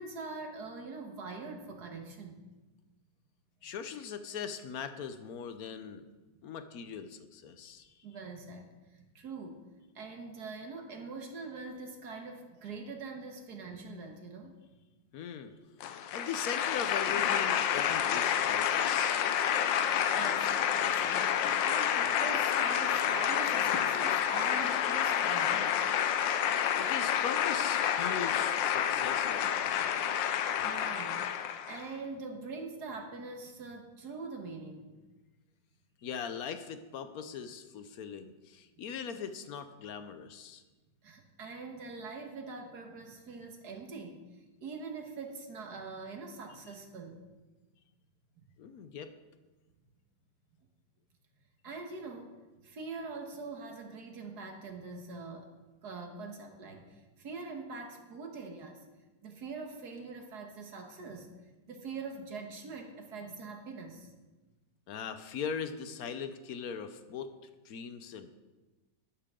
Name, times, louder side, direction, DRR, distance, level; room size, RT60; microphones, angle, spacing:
voice 1, 0.0-2.5 8.0-9.6 10.0-14.5 20.1-25.8 30.6-34.9 41.0-44.2 44.6-47.2 51.6-52.4 52.6-55.5 55.8-58.8 59.2-61.3 61.7-64.1, right 4 dB, 60° right, 3 dB, 1.9 m, -43 dB
voice 2, 3.6-6.0 6.4-8.0 15.1-15.7 16.1-19.2 26.4-30.0 36.0-40.6 48.6-49.1 64.9-67.4 67.6-68.4, left 7 dB, 60° left, 9 dB, 1.1 m, -40 dB
sound 1, 15.8-31.9, left 9 dB, 85° left, 1.4 m, -29 dB
12.0 x 11.5 x 3.7 m, 1.2 s
omnidirectional pair, 2.0 m